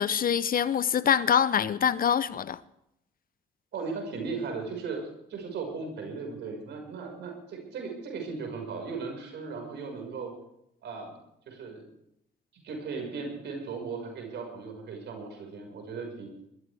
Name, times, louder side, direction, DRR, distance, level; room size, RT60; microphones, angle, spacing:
voice 1, 0.0-2.6, left 8 dB, 50° left, 0.8 m, -25 dB
voice 2, 3.7-5.0 5.3-10.3 10.8-11.1 11.5-11.8 12.6-16.4, right 4 dB, 70° right, 5.6 m, -37 dB
21.5 x 14.5 x 3.5 m
supercardioid pair, 60°, 19 cm